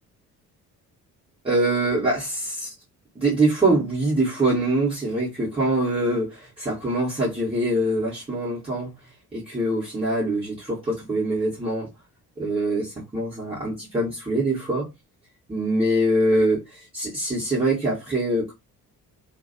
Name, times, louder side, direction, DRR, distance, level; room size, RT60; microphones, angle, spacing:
voice 1, 1.4-2.7 3.1-8.9 9.3-11.9 12.4-14.9 15.5-18.5, right 1 dB, 10° right, 1.0 m, -24 dB
2.5 x 2.2 x 2.6 m
figure-of-eight pair, 45°, 47 cm